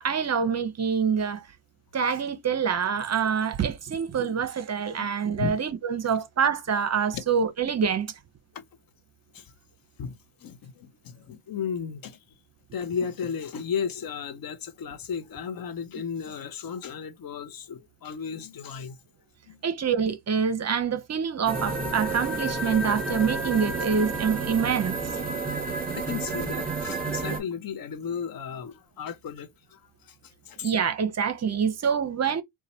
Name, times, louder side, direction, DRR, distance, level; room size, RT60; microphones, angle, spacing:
voice 1, 0.0-1.4 1.9-8.1 19.6-25.0 30.6-32.4, right 6 dB, 35° right, 0.7 m, -26 dB
voice 2, 10.0-12.4 12.7-19.0 19.5-19.6 25.5-25.6 25.9-30.7 31.6-31.7, left 7 dB, 50° left, 0.7 m, -35 dB
sound 1, 21.5-27.4, right 3 dB, 20° right, 2.2 m, -30 dB
4.0 x 2.2 x 4.2 m
cardioid pair, 105°, 46 cm